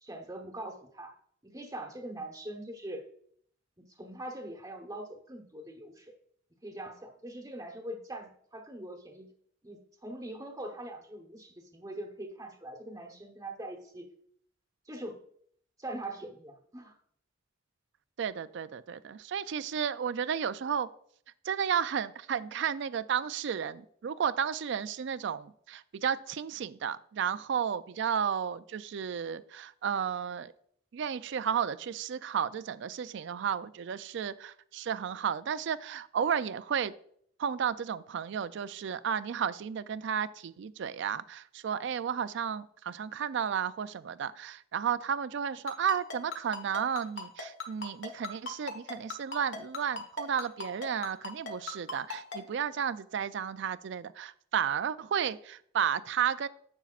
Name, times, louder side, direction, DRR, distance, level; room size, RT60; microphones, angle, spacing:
voice 1, 0.0-1.1 1.4-3.0 3.8-6.2 6.6-9.3 9.6-14.1 14.9-15.2 15.8-17.0, right 1 dB, 20° right, 4 dB, 1.1 m, -42 dB
voice 2, 18.2-20.9 21.4-30.5 30.9-36.9 37.4-56.5, right 7 dB, 65° right, 15 dB, 0.4 m, -33 dB
Ringtone, 45.7-52.4, left 4 dB, 70° left, 1.3 m, -37 dB
9.8 x 7.1 x 2.5 m, 0.63 s
head